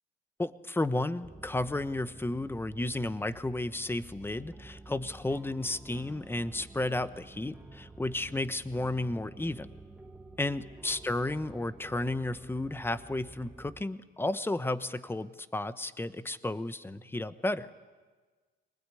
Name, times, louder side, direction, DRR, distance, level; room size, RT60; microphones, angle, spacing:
voice 1, 0.4-9.7 10.4-17.7, left 2 dB, 10° left, 13 dB, 1.0 m, -33 dB
sound 1, 1.2-13.8, right 2 dB, 5° right, 1.7 m, -50 dB
24.0 x 20.0 x 9.9 m, 1.4 s
cardioid pair, 90°, 20 cm